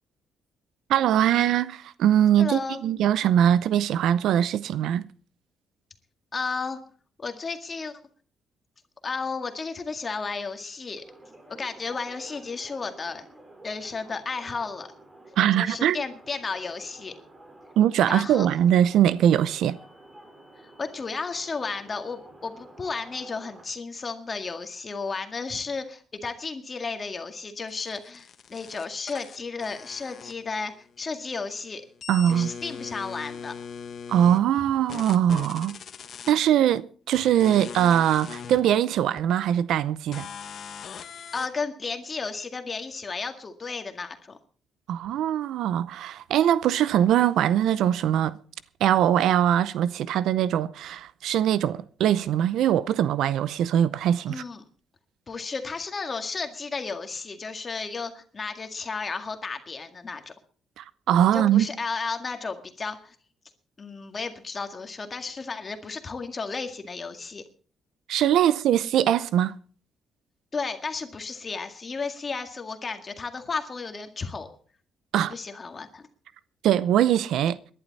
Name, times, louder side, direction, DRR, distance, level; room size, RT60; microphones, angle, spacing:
voice 1, 0.9-5.0 15.4-16.0 17.8-19.8 32.1-32.5 34.1-35.8 36.3-40.3 44.9-48.4 48.8-54.4 60.8-61.7 68.1-69.6 75.1-75.3 76.6-77.6, right 10 dB, 80° right, 0.6 m, -22 dB
voice 2, 2.4-2.8 6.3-6.8 7.2-8.0 9.0-11.0 11.5-13.3 13.6-14.9 15.6-17.1 18.1-18.5 20.6-31.8 32.3-33.5 41.3-44.4 54.3-54.6 55.3-60.3 61.3-63.2 63.8-67.4 70.5-74.5 75.3-76.1, left 4 dB, 35° left, 1.9 m, -33 dB
sound 1, 11.0-23.6, right 1 dB, 25° right, 4.3 m, -50 dB
sound 2, 27.7-30.8 31.1-34.4 34.9-36.3 37.1-38.6 39.2-39.3 40.1-41.5, left 7 dB, 60° left, 1.2 m, -40 dB
20.0 x 11.0 x 4.1 m
cardioid pair, 90°, 0 cm